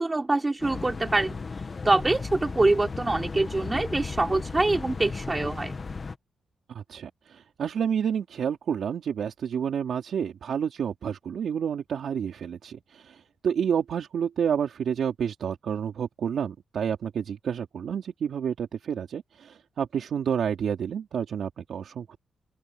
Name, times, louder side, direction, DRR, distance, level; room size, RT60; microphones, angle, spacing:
voice 1, 0.0-1.4 1.8-5.8, right 2 dB, 15° right, 5.9 m, -25 dB
sound 1, 0.6-6.1, left 4 dB, 30° left, 1.9 m, -35 dB
voice 2, 6.7-22.2, right 8 dB, 60° right, 4.0 m, -29 dB
open air
wide cardioid pair, 150°, 0 cm